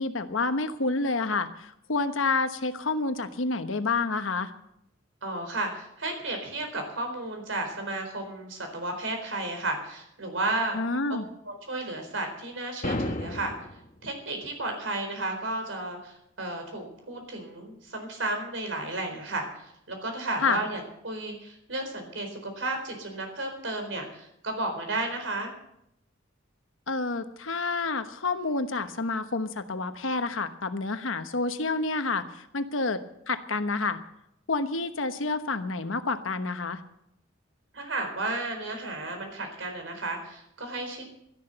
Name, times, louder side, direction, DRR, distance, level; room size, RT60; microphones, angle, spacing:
voice 1, 0.0-4.5 10.7-11.3 20.4-20.6 26.9-34.0 34.5-36.8, left 3 dB, 90° left, 9 dB, 1.1 m, -29 dB
voice 2, 5.2-10.8 11.4-13.5 14.0-25.5 37.7-41.0, right 2 dB, 75° right, 4 dB, 4.3 m, -33 dB
sound 1, 12.8-13.9, left 1 dB, 40° left, 1.1 m, -31 dB
12.5 x 11.0 x 7.9 m, 0.78 s
head